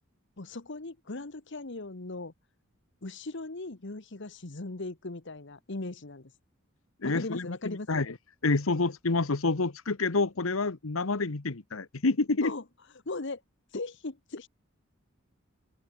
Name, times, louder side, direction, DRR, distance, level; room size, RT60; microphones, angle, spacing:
voice 1, 0.4-2.3 3.0-6.3 7.0-8.0 12.4-12.6 13.1-13.4 13.7-14.5, left 2 dB, 60° left, 1.3 m, -38 dB
voice 2, 7.0-8.1 8.4-12.5, left 3 dB, 85° left, 1.2 m, -28 dB
open air
head